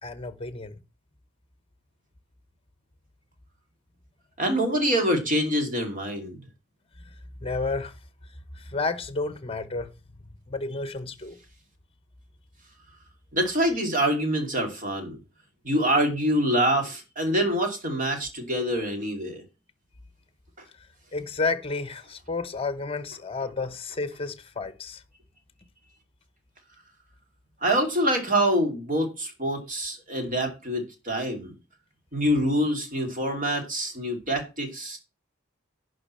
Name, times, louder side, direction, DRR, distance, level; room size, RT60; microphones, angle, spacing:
voice 1, 0.0-0.7 7.4-7.9 8.5-9.9 10.5-11.4 21.1-25.0, left 3 dB, 25° left, 1.0 m, -31 dB
voice 2, 4.4-6.4 13.3-15.2 15.6-19.4 27.6-31.5 32.1-35.0, equal, 40° right, 2.7 m, -25 dB
11.0 x 3.8 x 7.5 m
head